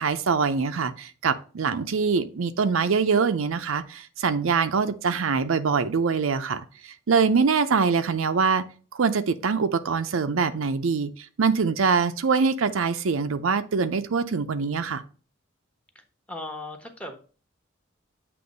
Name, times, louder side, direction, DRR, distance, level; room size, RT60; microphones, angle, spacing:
voice 1, 0.0-6.6 7.1-8.6 8.9-11.1 11.4-15.0, right 5 dB, 80° right, 0.5 m, -24 dB
voice 2, 16.3-17.2, left 2 dB, 5° left, 1.0 m, -36 dB
7.8 x 3.1 x 5.2 m
head